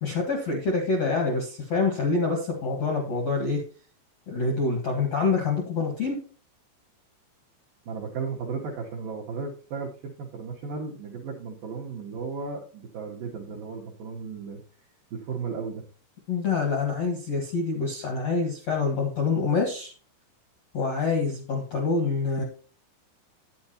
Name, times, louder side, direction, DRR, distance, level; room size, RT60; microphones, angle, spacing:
voice 1, 0.0-3.6 4.3-6.2 16.3-19.9 20.7-22.4, left 4 dB, 65° left, 1 dB, 1.7 m, -26 dB
voice 2, 7.9-14.6 15.1-15.8, right 5 dB, 70° right, -2 dB, 2.2 m, -35 dB
10.5 x 9.4 x 2.9 m, 0.37 s
omnidirectional pair, 5.5 m